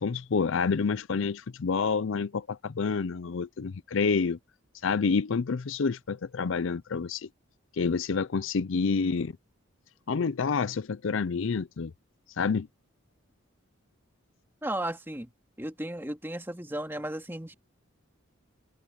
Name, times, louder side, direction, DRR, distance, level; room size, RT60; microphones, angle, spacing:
voice 1, 0.0-4.4 4.8-7.3 7.8-9.3 10.1-11.9 12.4-12.7, left 5 dB, 65° left, 0.5 m, -28 dB
voice 2, 14.6-15.3 15.6-17.5, right 1 dB, 10° right, 2.2 m, -34 dB
head